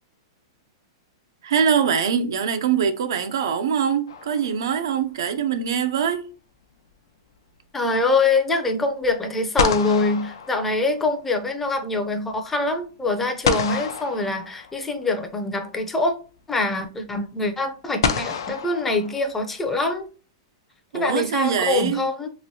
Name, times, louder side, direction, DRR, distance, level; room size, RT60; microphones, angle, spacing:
voice 1, 1.4-6.3 20.9-22.1, right 7 dB, 80° right, 0.5 m, -23 dB
sound 1, 4.1-5.0 9.0-9.1 9.6-11.3 13.4-15.0 16.4-16.5 18.0-19.7, left 6 dB, 85° left, 0.5 m, -28 dB
voice 2, 7.7-16.1 16.5-20.1 20.9-22.3, left 3 dB, 10° left, 0.5 m, -24 dB
3.0 x 2.9 x 2.7 m
supercardioid pair, 150°, 2 cm